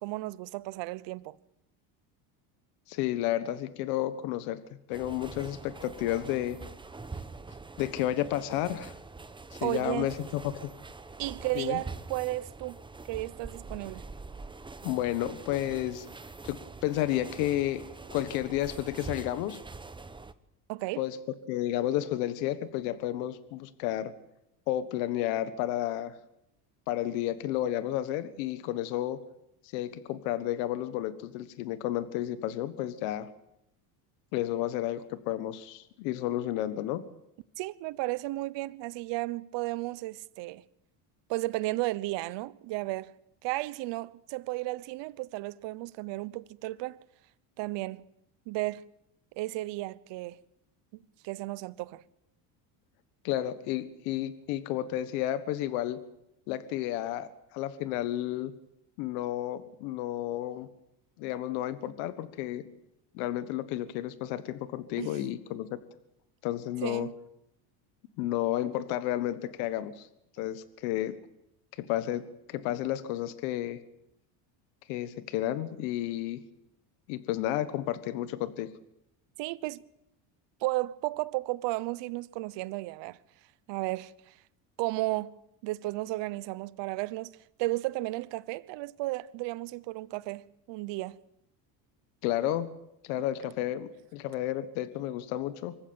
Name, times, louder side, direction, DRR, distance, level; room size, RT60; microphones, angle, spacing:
voice 1, 0.0-1.4 9.6-10.1 11.2-12.8 13.1-14.1 20.7-21.0 37.6-40.6 41.3-43.1 43.4-47.0 47.6-48.1 48.5-48.9 49.4-50.4 50.9-52.0 65.0-65.3 66.8-67.1 79.4-79.8 80.6-83.2 83.7-84.4 84.8-85.4 85.6-91.2, right 19 dB, 65° right, 1.0 m, -34 dB
voice 2, 2.9-4.6 4.9-6.6 7.8-8.9 9.6-10.7 11.5-11.8 14.8-16.1 16.4-17.9 18.1-19.6 21.0-21.2 21.5-24.1 24.7-26.1 26.9-29.2 29.7-33.3 34.3-37.0 53.2-56.0 56.5-58.5 59.0-60.7 61.2-62.6 63.1-65.8 66.4-67.1 68.2-70.1 70.4-71.1 71.8-73.8 74.9-76.4 77.1-78.7 92.2-92.7 93.0-95.7, left 13 dB, 80° left, 1.5 m, -31 dB
sound 1, 4.9-20.3, right 3 dB, 10° right, 0.9 m, -44 dB
25.0 x 15.0 x 9.0 m
supercardioid pair, 110°, 47 cm